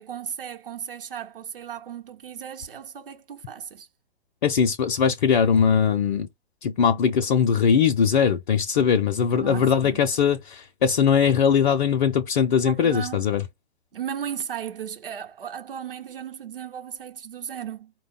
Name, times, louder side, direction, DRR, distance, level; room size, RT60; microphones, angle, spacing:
voice 1, 0.0-3.9 9.3-10.1 12.6-13.3 13.9-17.9, right 8 dB, 60° right, 0.9 m, -36 dB
voice 2, 4.4-6.3 6.6-13.4, left 7 dB, 50° left, 0.6 m, -21 dB
4.9 x 2.3 x 3.7 m
figure-of-eight pair, 115°, 32 cm